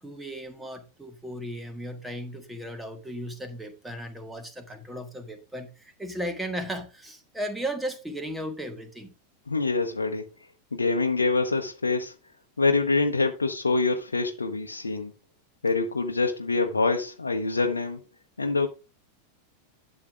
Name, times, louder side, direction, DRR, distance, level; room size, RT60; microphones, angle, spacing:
voice 1, 0.0-9.1, equal, 5° right, 1.5 m, -36 dB
voice 2, 9.5-10.3 10.7-12.1 12.6-15.1 15.6-18.0 18.4-18.7, left 3 dB, 75° left, 0.8 m, -25 dB
11.5 x 7.5 x 2.4 m
figure-of-eight pair, 90°, 0 cm